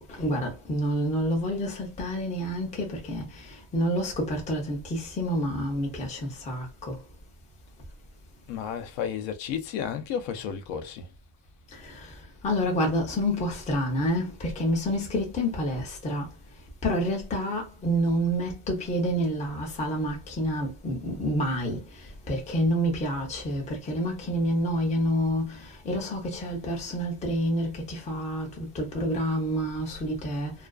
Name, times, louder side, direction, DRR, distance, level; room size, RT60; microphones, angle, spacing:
voice 1, 0.2-3.2 3.7-7.0 12.4-16.3 16.8-21.8 22.3-25.5 25.9-30.5, equal, 15° left, 0.5 m, -28 dB
voice 2, 8.5-11.1, left 8 dB, 60° left, 0.6 m, -32 dB
2.4 x 2.3 x 2.3 m
cardioid pair, 150°, 48 cm